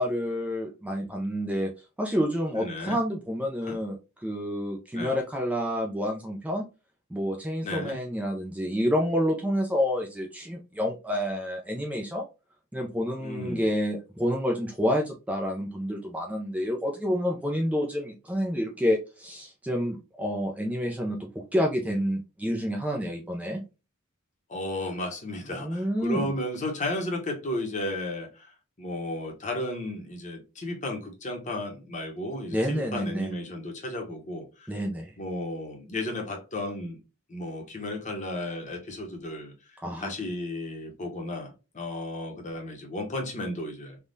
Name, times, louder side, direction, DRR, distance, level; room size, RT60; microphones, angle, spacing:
voice 1, 0.0-1.7 2.0-6.7 7.1-12.2 12.7-23.6 25.6-26.3 32.5-33.3 34.7-35.1 39.8-40.1, equal, 5° right, 0.4 m, -29 dB
voice 2, 2.5-3.0 3.6-3.8 4.9-5.2 7.6-7.9 13.2-13.7 24.5-34.7 35.2-37.0 37.3-39.5 40.0-44.0, left 1 dB, 35° left, 0.9 m, -34 dB
3.5 x 2.2 x 2.6 m
head